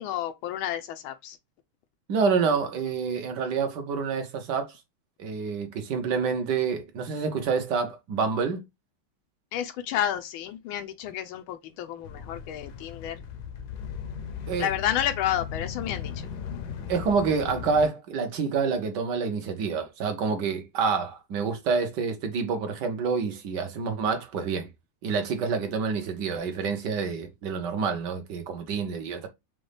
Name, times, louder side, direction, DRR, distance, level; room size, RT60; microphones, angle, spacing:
voice 1, 0.0-1.4 9.5-13.2 14.6-16.3, left 11 dB, 90° left, 1.5 m, -30 dB
voice 2, 2.1-4.8 5.2-8.6 14.5-14.7 16.9-24.7 25.0-29.3, right 5 dB, 65° right, 1.4 m, -27 dB
sound 1, 12.0-17.9, left 7 dB, 70° left, 1.0 m, -37 dB
5.2 x 2.3 x 3.3 m
omnidirectional pair, 2.2 m